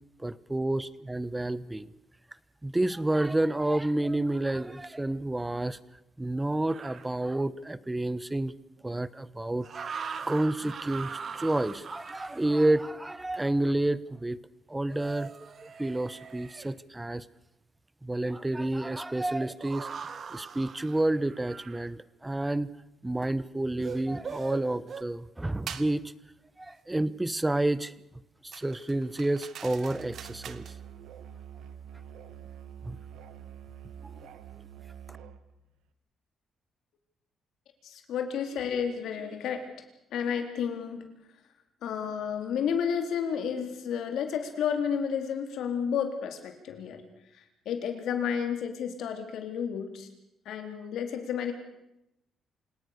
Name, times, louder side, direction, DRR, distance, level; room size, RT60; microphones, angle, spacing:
voice 1, 0.2-1.9 2.6-5.8 6.2-8.5 8.8-9.7 10.3-14.4 14.7-15.3 15.8-17.2 18.0-19.9 20.3-22.7 23.0-26.1 26.6-27.9 28.4-30.6 32.8-33.0 34.0-34.1, right 1 dB, 15° right, 18 dB, 1.1 m, -29 dB
sound 1, 6.7-7.1 9.6-12.8 14.9-16.7 19.6-21.8 23.8-25.0, right 6 dB, 50° right, 1.8 m, -41 dB
sound 2, 25.7-25.9 28.5-30.8, right 9 dB, 65° right, 1.5 m, -44 dB
Musical instrument, 29.9-35.5, right 9 dB, 85° right, 1.7 m, -46 dB
voice 2, 37.8-39.6 40.1-41.0 41.8-47.0 47.4-50.1 50.5-51.5, left 7 dB, 75° left, 6 dB, 4.0 m, -31 dB
28.0 x 18.5 x 6.8 m, 0.89 s
cardioid pair, 90°, 0 cm